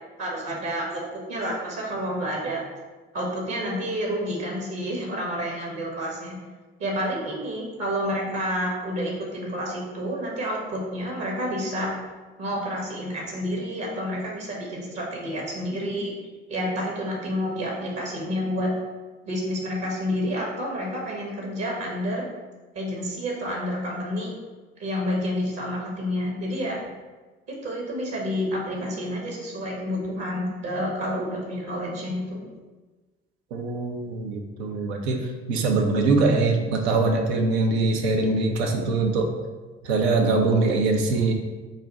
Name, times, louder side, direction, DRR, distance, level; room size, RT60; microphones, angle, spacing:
voice 1, 0.2-2.6 3.1-6.4 6.8-11.9 12.4-16.1 16.5-18.7 19.2-22.3 22.7-24.3 24.8-26.8 27.5-32.5, equal, 50° right, -2 dB, 1.2 m, -29 dB
voice 2, 33.5-39.3 39.8-41.3, right 3 dB, 70° right, 3 dB, 0.7 m, -23 dB
4.1 x 2.6 x 4.1 m, 1.3 s
figure-of-eight pair, 50°, 33 cm